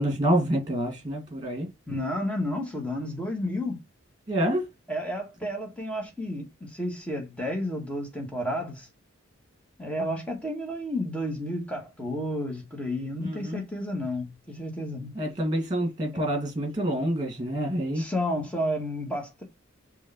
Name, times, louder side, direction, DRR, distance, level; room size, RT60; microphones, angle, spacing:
voice 1, 0.0-1.7 4.3-4.6 13.2-13.6 15.2-18.0, right 1 dB, 20° right, 2.4 m, -27 dB
voice 2, 1.9-3.8 4.9-8.9 9.8-15.1 17.9-19.4, left 1 dB, 5° left, 1.7 m, -31 dB
5.2 x 3.3 x 5.6 m
head